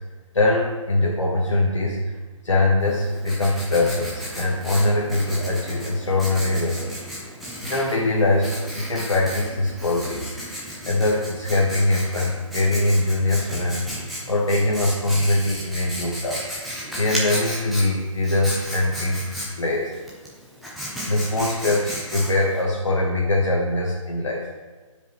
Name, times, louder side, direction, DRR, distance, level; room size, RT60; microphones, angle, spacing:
voice 1, 0.3-6.9 7.6-10.3 10.8-13.8 14.3-19.2 19.6-19.9 21.0-24.5, left 2 dB, 65° left, -3 dB, 1.2 m, -22 dB
Writing, 2.8-22.6, equal, ahead, 0.5 m, -34 dB
11.5 x 5.0 x 3.0 m, 1.3 s
figure-of-eight pair, 145°, 17 cm